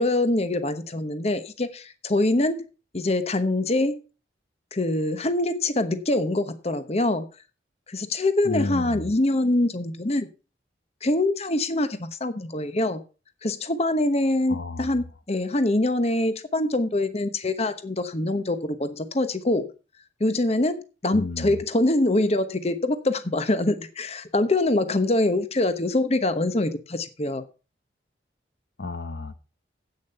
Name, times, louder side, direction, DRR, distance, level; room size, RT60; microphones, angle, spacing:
voice 1, 0.0-2.6 2.9-4.0 4.7-7.3 7.9-10.3 11.0-13.0 13.4-19.7 20.2-27.4, left 2 dB, 35° left, 11 dB, 1.0 m, -24 dB
voice 2, 8.4-9.1 14.5-14.9 21.1-21.6 28.8-29.3, left 3 dB, 65° left, 11 dB, 0.9 m, -31 dB
10.5 x 8.7 x 5.5 m, 0.34 s
head